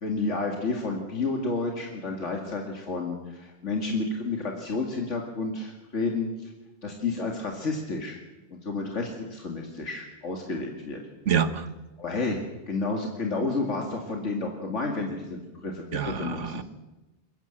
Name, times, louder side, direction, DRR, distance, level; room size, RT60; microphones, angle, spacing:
voice 1, 0.0-6.5 6.8-8.2 8.5-11.0 12.0-12.4 12.7-16.6, left 3 dB, 75° left, 1 dB, 2.5 m, -31 dB
voice 2, 11.3-11.7 15.9-16.6, right 7 dB, 80° right, 11 dB, 1.6 m, -26 dB
22.0 x 15.0 x 8.9 m, 1.1 s
omnidirectional pair, 1.2 m